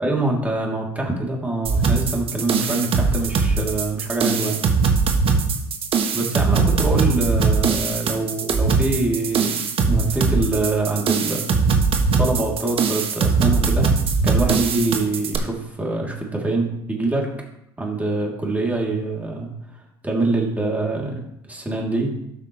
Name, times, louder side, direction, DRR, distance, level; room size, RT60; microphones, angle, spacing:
voice 1, 0.0-4.6 6.1-9.6 9.9-11.5 12.2-13.9 14.2-17.3 17.8-19.5 20.0-21.2 21.5-22.1, right 2 dB, 10° right, -2 dB, 3.0 m, -24 dB
sound 1, 1.6-15.4, right 4 dB, 45° right, 1.3 m, -20 dB
13.0 x 5.9 x 3.2 m, 0.79 s
hypercardioid pair, 75°, 13 cm